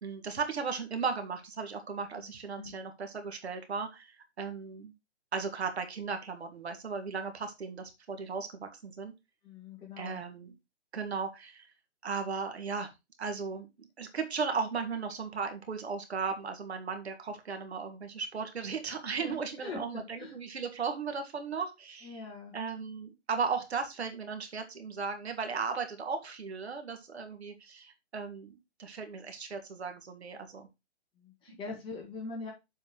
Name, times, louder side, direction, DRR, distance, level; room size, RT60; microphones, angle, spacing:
voice 1, 0.0-4.9 5.3-9.1 10.0-10.5 10.9-11.7 12.0-12.9 13.2-22.2 22.5-28.5 28.8-30.7 31.5-31.6, right 5 dB, 65° right, 6 dB, 1.9 m, -36 dB
voice 2, 9.4-10.2 16.3-16.4 19.1-20.4 22.0-22.6 31.2-32.5, left 3 dB, 15° left, 0 dB, 1.8 m, -43 dB
7.3 x 4.7 x 4.5 m, 0.24 s
hypercardioid pair, 145°, 34 cm